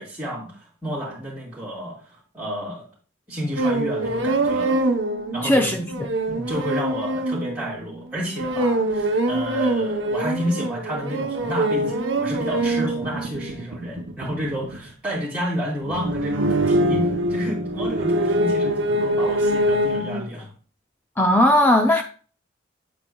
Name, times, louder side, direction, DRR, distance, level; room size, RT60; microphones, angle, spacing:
voice 1, 0.0-2.8 3.3-4.8 5.3-5.7 6.3-20.5, equal, 5° right, 2.8 m, -30 dB
sound 1, 3.6-8.0 8.4-14.9 15.8-20.3, right 1 dB, 70° right, 0.9 m, -24 dB
voice 2, 5.4-6.4 21.2-22.0, left 1 dB, 10° left, 0.5 m, -18 dB
8.5 x 8.1 x 2.3 m
head